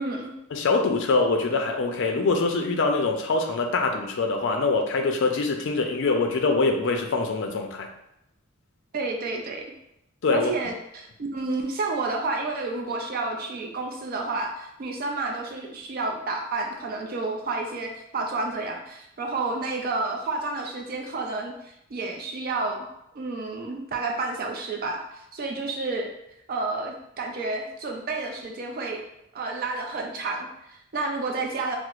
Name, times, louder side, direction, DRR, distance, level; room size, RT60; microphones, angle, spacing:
voice 1, 0.0-0.3 8.9-9.7 10.3-22.8 23.1-26.1 26.5-29.0 29.3-31.8, right 3 dB, 45° right, 2 dB, 0.4 m, -30 dB
voice 2, 0.5-7.9 10.2-10.5, left 3 dB, 60° left, 4 dB, 0.4 m, -24 dB
4.5 x 2.0 x 2.4 m, 0.81 s
head